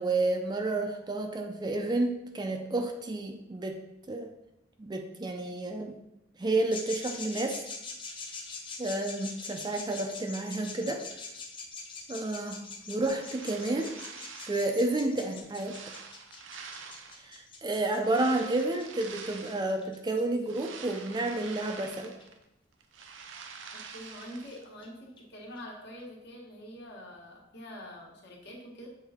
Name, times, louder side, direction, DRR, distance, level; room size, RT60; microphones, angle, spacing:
voice 1, 0.0-3.8 4.1-4.3 4.8-6.0 6.4-7.7 8.8-11.0 12.1-13.9 14.4-15.9 17.2-22.1, right 2 dB, 20° right, 4 dB, 0.4 m, -30 dB
sound 1, 6.7-20.2 21.5-21.6 22.2-22.3 23.0-23.1 23.4-23.5 23.8-23.9 24.2-24.3 24.5-24.6 24.8-24.9 25.2-25.3 25.6-25.7 26.0-26.1, left 4 dB, 25° left, 0.7 m, -43 dB
sound 2, 12.8-14.9 15.3-17.4 18.0-19.8 20.2-22.4 22.7-24.6, right 5 dB, 70° right, 0.6 m, -46 dB
voice 2, 23.7-28.9, equal, 60° left, -2 dB, 1.4 m, -45 dB
7.5 x 3.6 x 3.5 m, 0.85 s
head